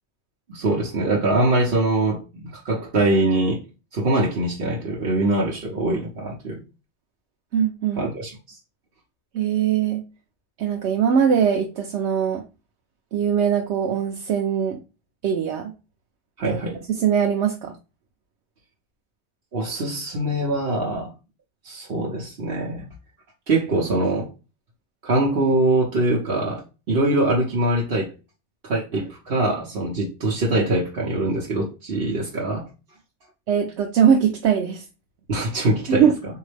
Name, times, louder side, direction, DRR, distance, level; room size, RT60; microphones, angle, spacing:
voice 1, 0.5-3.6 3.9-6.6 8.0-8.3 16.4-16.8 19.5-21.1 21.6-22.8 23.5-24.3 25.0-28.1 28.6-32.7 35.3-36.0, right 2 dB, 65° right, 1.1 m, -23 dB
voice 2, 7.5-8.1 9.3-10.0 10.6-12.4 13.1-14.8 15.2-15.7 16.4-16.6 17.0-17.7 33.5-34.8 35.9-36.1, right 8 dB, 85° right, 0.9 m, -21 dB
4.0 x 2.7 x 3.2 m
omnidirectional pair, 1.1 m